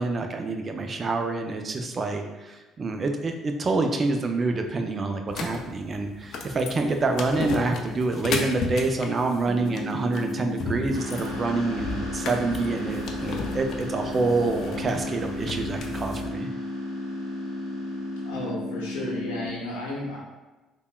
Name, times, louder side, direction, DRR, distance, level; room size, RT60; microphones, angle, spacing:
voice 1, 0.0-16.5, right 3 dB, 40° right, 5 dB, 0.4 m, -27 dB
sound 1, 5.3-16.3, left 4 dB, 60° left, 0.3 m, -35 dB
sound 2, 9.5-19.5, left 1 dB, 20° right, 0.9 m, -33 dB
sound 3, 10.9-18.5, equal, 90° right, 0.7 m, -44 dB
voice 2, 18.2-20.2, left 2 dB, 85° left, -4 dB, 0.7 m, -33 dB
3.3 x 2.2 x 2.3 m, 1.1 s
hypercardioid pair, 65°, 0 cm